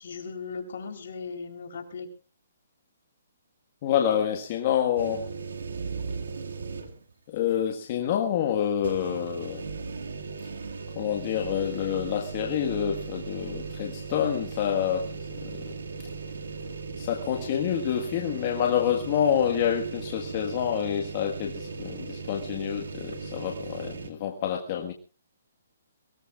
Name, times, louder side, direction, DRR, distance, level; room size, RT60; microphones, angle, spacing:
voice 1, 0.0-2.1, left 5 dB, 65° left, 5 dB, 3.7 m, -37 dB
voice 2, 3.8-5.3 7.3-9.6 10.9-15.8 17.0-24.9, left 9 dB, 40° left, 2 dB, 1.6 m, -27 dB
sound 1, 5.0-7.1 7.5-7.6 8.8-24.1, right 4 dB, 80° right, 2.2 m, -37 dB
23.0 x 18.5 x 2.5 m, 0.33 s
hypercardioid pair, 150°, 0 cm